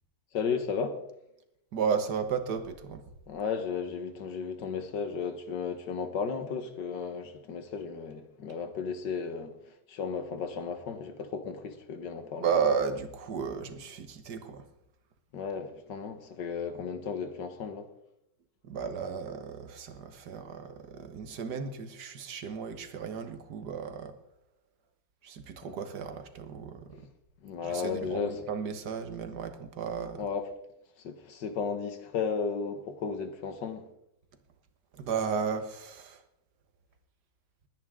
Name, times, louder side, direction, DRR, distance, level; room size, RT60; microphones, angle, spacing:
voice 1, 0.3-1.0 3.3-9.6 9.9-12.5 15.3-17.9 25.6-25.8 26.9-27.1 27.4-28.4 30.2-30.4 31.0-33.9, left 5 dB, 75° left, 1.9 m, -34 dB
voice 2, 1.7-3.0 12.4-14.7 18.6-24.1 25.2-26.9 27.6-30.2 34.9-36.2, right 6 dB, 65° right, 1.7 m, -33 dB
20.0 x 9.9 x 3.7 m
omnidirectional pair, 1.9 m